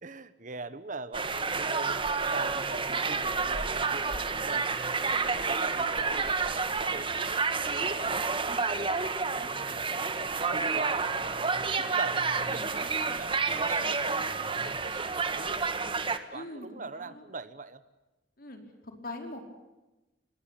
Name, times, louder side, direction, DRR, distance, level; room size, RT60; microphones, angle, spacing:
voice 1, 0.0-9.9 10.5-15.6 16.1-17.8, right 3 dB, 45° right, 14 dB, 1.2 m, -42 dB
sound 1, 1.1-16.2, right 4 dB, 30° right, 1.7 m, -30 dB
voice 2, 4.0-4.8 16.3-17.2 18.4-19.4, left 2 dB, 55° left, 4 dB, 5.1 m, -44 dB
26.5 x 21.5 x 8.8 m, 1.1 s
head